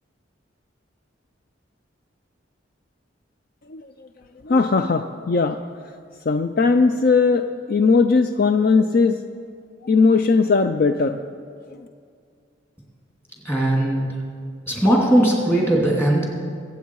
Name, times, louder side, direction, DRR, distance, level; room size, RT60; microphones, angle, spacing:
voice 1, 4.4-5.6 6.3-7.4 7.7-9.2 9.8-11.2, left 4 dB, 50° left, 8 dB, 0.4 m, -18 dB
voice 2, 13.4-14.1 14.7-16.2, right 1 dB, 10° left, -2 dB, 2.7 m, -19 dB
23.5 x 8.2 x 4.7 m, 2.2 s
head